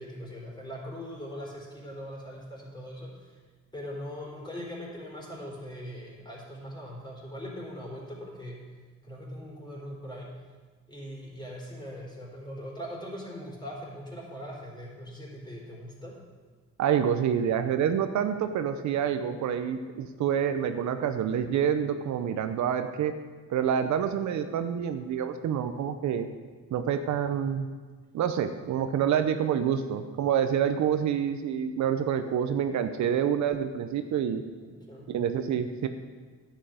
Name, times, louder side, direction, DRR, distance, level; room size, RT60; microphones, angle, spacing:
voice 1, 0.0-3.4 3.7-8.6 9.0-10.3 10.9-16.2 34.6-35.1, equal, 15° left, -3 dB, 3.7 m, -41 dB
voice 2, 16.8-23.1 23.5-26.3 26.7-27.7 28.1-34.4 35.1-35.9, right 8 dB, 70° right, 8 dB, 0.7 m, -27 dB
10.0 x 8.3 x 5.1 m, 1.4 s
cardioid pair, 90°, 30 cm